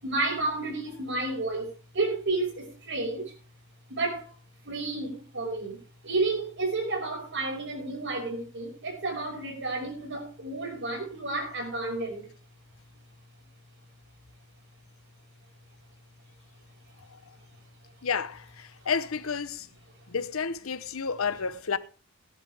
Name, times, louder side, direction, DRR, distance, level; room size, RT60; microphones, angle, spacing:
voice 1, 0.0-1.7 1.9-3.3 3.9-4.2 4.6-5.8 6.0-12.3, right 2 dB, 60° right, 5.8 m, -31 dB
voice 2, 18.0-19.7 20.1-21.8, left 5 dB, 75° left, 0.9 m, -31 dB
17.0 x 11.0 x 3.5 m
head